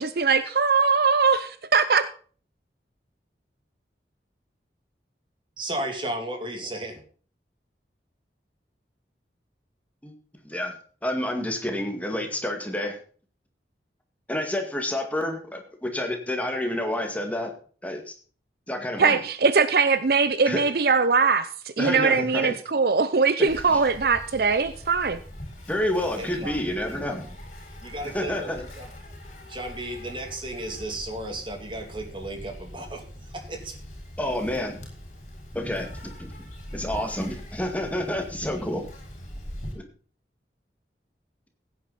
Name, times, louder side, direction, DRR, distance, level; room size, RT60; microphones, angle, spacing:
voice 1, 0.0-2.1 19.0-25.2, right 5 dB, 55° right, 0.6 m, -21 dB
voice 2, 5.6-7.0 26.2-27.2 27.8-28.9 29.5-33.0 33.3-33.7, right 1 dB, 30° right, 2.7 m, -34 dB
voice 3, 11.0-13.0 14.3-17.5 17.8-18.1 18.7-19.2 20.5-20.6 21.8-22.5 23.4-23.8 25.7-27.3 28.1-28.6 34.2-34.8 35.5-35.9 36.2-36.3 36.7-38.9 39.8-39.9, left 1 dB, 10° left, 2.0 m, -29 dB
Insect, 23.5-39.7, equal, 40° left, 6.1 m, -42 dB
16.0 x 9.5 x 4.1 m
head